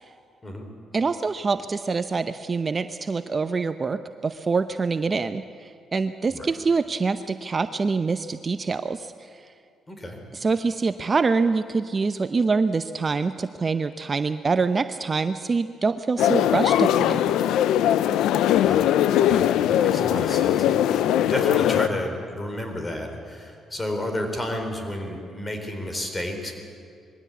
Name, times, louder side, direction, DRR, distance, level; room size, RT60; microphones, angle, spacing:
voice 1, 0.9-9.3 10.3-17.5, right 4 dB, 35° right, 10 dB, 0.7 m, -25 dB
voice 2, 9.9-10.2 18.5-26.5, left 1 dB, 20° left, 4 dB, 4.1 m, -32 dB
sound 1, 16.2-21.9, left 11 dB, 85° left, 0.5 m, -20 dB
21.5 x 16.0 x 8.4 m, 2.4 s
cardioid pair, 90°, 0 cm